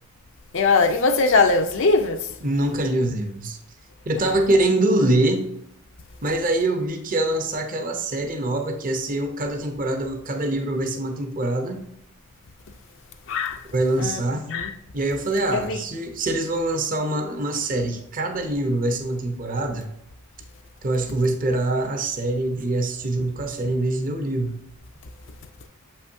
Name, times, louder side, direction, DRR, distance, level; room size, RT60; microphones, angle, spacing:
voice 1, 0.5-2.3 4.3-4.4 13.3-13.6 14.0-14.2 14.5-14.7 15.5-15.8, left 4 dB, 60° left, 0.5 m, -20 dB
voice 2, 2.4-3.6 4.1-5.5 6.2-11.8 13.7-14.4 14.9-19.9 20.8-24.6, right 2 dB, 40° right, 0.7 m, -24 dB
7.4 x 5.7 x 2.6 m
head